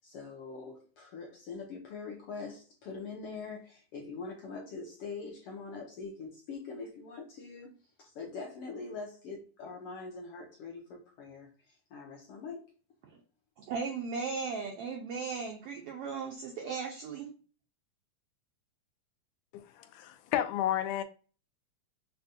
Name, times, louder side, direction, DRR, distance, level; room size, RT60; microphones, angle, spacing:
voice 1, 0.0-7.7 8.0-12.7, left 4 dB, 75° left, 1.3 m, -43 dB
voice 2, 13.6-17.3, right 5 dB, 80° right, 1.3 m, -37 dB
voice 3, 19.5-21.0, left 11 dB, 90° left, 2.1 m, -32 dB
6.5 x 2.2 x 2.7 m
omnidirectional pair, 3.5 m